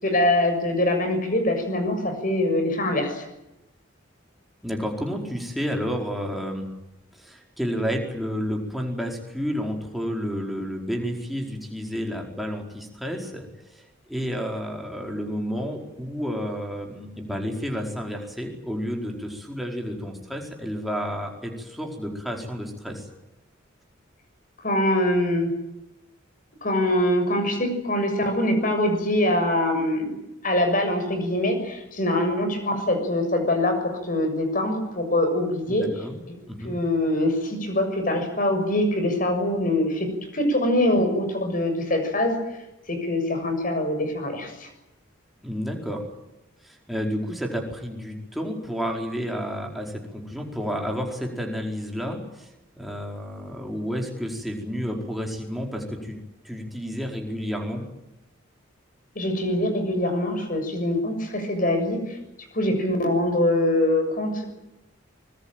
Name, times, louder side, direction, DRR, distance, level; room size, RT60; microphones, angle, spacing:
voice 1, 0.0-3.2 24.6-25.5 26.6-30.1 30.4-36.3 36.6-42.4 42.9-44.7 59.1-62.2 62.5-64.4, left 1 dB, 40° left, 6 dB, 6.8 m, -24 dB
voice 2, 4.6-6.7 7.1-23.1 35.7-36.2 36.5-36.8 45.4-46.0 46.6-56.2 56.4-57.8, equal, ahead, 0 dB, 4.7 m, -31 dB
25.0 x 21.0 x 9.1 m, 0.92 s
head